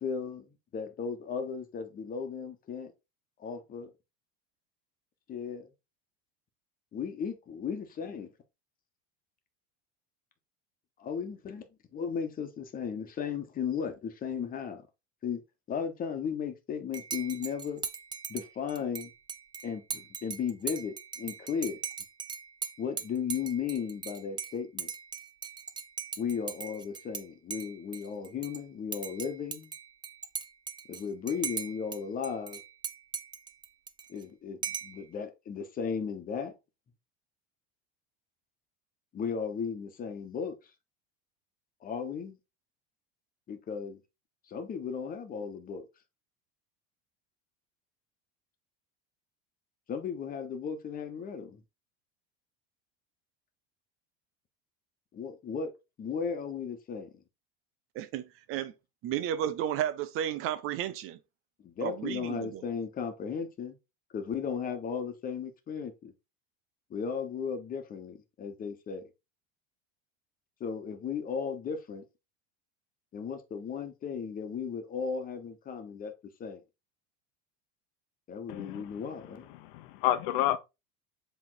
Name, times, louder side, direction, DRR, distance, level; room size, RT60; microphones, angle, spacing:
voice 1, 0.0-2.9 3.4-3.9 5.3-5.7 6.9-8.3 11.0-14.8 15.2-15.4 15.7-17.8 18.3-19.1 19.6-21.8 22.8-24.9 26.2-29.7 30.9-32.6 34.1-36.5 39.1-40.6 41.8-42.4 43.5-44.0 44.5-45.8 49.9-51.6 55.1-55.7 56.0-57.1 61.6-63.8 64.1-66.1 66.9-69.0 70.6-72.0 73.1-76.1 76.4-76.6 78.3-79.5, left 6 dB, 30° left, 1.4 m, -35 dB
Dishes pots and pans / Cutlery silverware / Chink clink, 16.9-27.2 27.5-28.6 28.9-32.0 32.2-34.2 34.6-35.0, right 6 dB, 15° right, 0.5 m, -39 dB
voice 2, 57.9-58.7 59.0-61.2 61.8-62.7, right 11 dB, 45° right, 0.8 m, -33 dB
voice 3, 78.5-79.0 79.5-80.6, left 13 dB, 70° left, 1.0 m, -30 dB
7.6 x 3.6 x 4.0 m
supercardioid pair, 135°, 29 cm